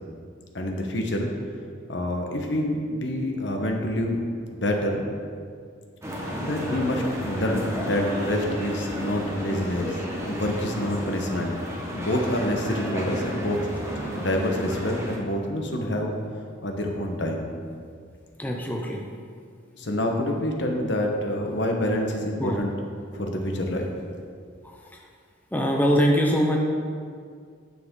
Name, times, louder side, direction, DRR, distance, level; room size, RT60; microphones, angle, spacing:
voice 1, 0.5-1.3 1.8-4.2 4.5-5.0 6.4-10.0 10.2-11.6 11.9-13.6 14.1-16.2 16.6-17.5 19.7-22.7 23.1-23.9, left 1 dB, 65° left, 2 dB, 1.1 m, -27 dB
sound 1, 6.0-15.2, equal, 15° right, 1.0 m, -32 dB
voice 2, 18.4-19.0 22.4-22.6 25.5-26.6, equal, 10° left, 0 dB, 0.6 m, -22 dB
9.6 x 6.9 x 3.7 m, 2.1 s
head